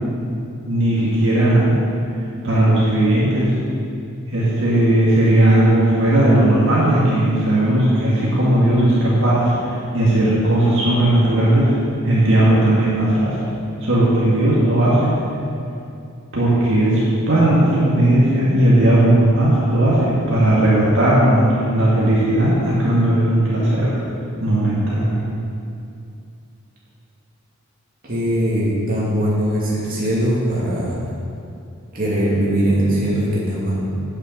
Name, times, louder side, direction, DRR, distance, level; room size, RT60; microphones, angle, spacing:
voice 1, 0.6-1.8 2.4-3.5 4.3-11.8 12.0-13.4 13.8-15.1 16.3-17.0 17.3-23.9 24.4-25.2, right 1 dB, 60° right, -8 dB, 2.1 m, -16 dB
voice 2, 28.0-31.0 31.9-33.8, right 1 dB, 40° right, -6 dB, 2.5 m, -20 dB
9.1 x 6.7 x 7.3 m, 2.5 s
head